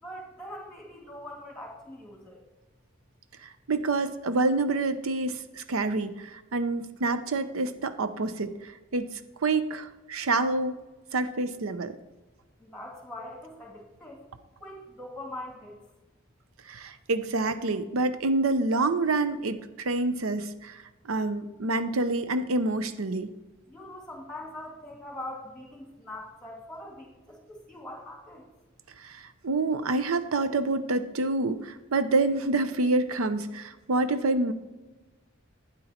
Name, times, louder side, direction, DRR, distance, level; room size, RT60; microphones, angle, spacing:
voice 1, 0.0-2.4 12.6-14.2 14.6-15.8 23.7-28.5, left 1 dB, ahead, 0 dB, 2.5 m, -42 dB
voice 2, 3.4-10.8 11.1-12.0 16.7-20.8 21.1-23.3 29.0-34.5, right 2 dB, 85° right, 11 dB, 0.7 m, -27 dB
12.0 x 9.1 x 4.3 m, 1.1 s
head